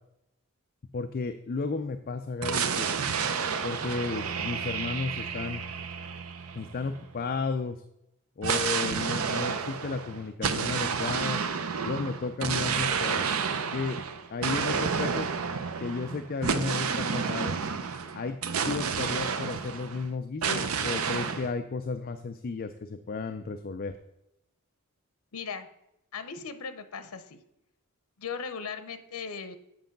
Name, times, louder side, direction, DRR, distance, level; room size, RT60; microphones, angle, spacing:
voice 1, 0.9-2.9 3.6-5.6 6.5-7.8 8.4-11.4 11.8-13.3 13.7-14.0 14.3-15.3 15.8-17.6 18.1-18.4 18.7-24.0, left 4 dB, 40° left, 8 dB, 0.4 m, -33 dB
sound 1, 2.4-7.1 8.4-20.1 20.4-21.5, right 6 dB, 75° right, 0.6 m, -30 dB
voice 2, 25.3-25.7 26.1-27.4 28.2-29.6, left 5 dB, 85° left, 11 dB, 0.7 m, -38 dB
8.0 x 5.3 x 5.2 m, 0.85 s
head